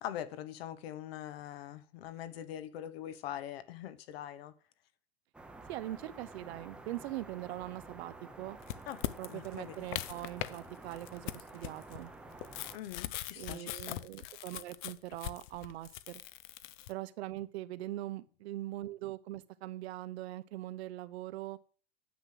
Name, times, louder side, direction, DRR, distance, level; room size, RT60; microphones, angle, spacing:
voice 1, 0.0-4.5 8.9-9.0 9.3-9.9 12.7-14.0, left 11 dB, 65° left, 1.3 m, -43 dB
sound 1, 5.3-12.8, right 2 dB, 5° right, 0.7 m, -51 dB
voice 2, 5.7-8.6 9.2-12.1 13.4-16.2 16.9-21.6, right 15 dB, 75° right, 1.0 m, -42 dB
sound 2, 8.6-10.6 10.9-16.9, left 15 dB, 45° left, 0.6 m, -41 dB
9.7 x 7.7 x 7.7 m
supercardioid pair, 180°, 32 cm